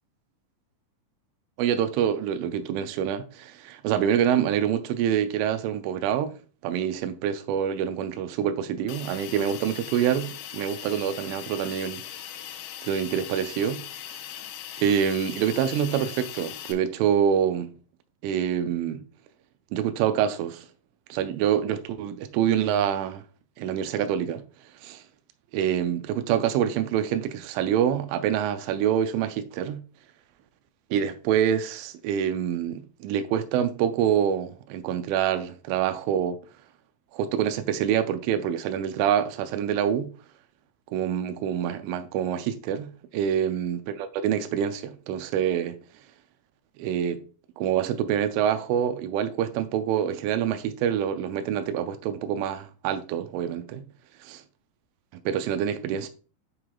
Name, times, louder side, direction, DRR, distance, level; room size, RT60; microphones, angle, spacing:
voice 1, 1.6-6.4 6.6-12.0 12.8-13.8 14.1-14.2 14.8-17.7 18.2-19.0 19.7-20.7 21.1-23.2 23.6-24.4 24.8-25.0 25.5-29.8 30.9-36.4 37.1-40.1 40.9-45.8 46.8-47.2 47.6-53.9 54.3-54.4 55.1-56.1, right 9 dB, 90° right, 3.0 m, -26 dB
Hiss, 8.9-16.7, left 11 dB, 85° left, 2.9 m, -39 dB
11.0 x 4.7 x 2.3 m
omnidirectional pair, 5.4 m